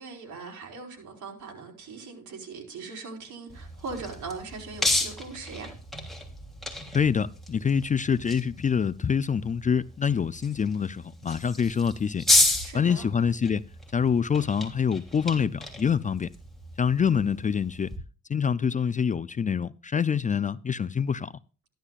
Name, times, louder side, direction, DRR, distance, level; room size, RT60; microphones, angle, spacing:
voice 1, 0.0-5.7 12.6-13.1, right 4 dB, 75° right, 4.4 m, -40 dB
sound 1, 3.5-18.0, left 1 dB, ahead, 3.2 m, -32 dB
voice 2, 6.9-12.2 12.7-13.6 13.9-16.3 16.8-17.9 18.3-21.3, left 7 dB, 25° left, 0.4 m, -26 dB
14.5 x 11.5 x 2.4 m
cardioid pair, 90°, 30 cm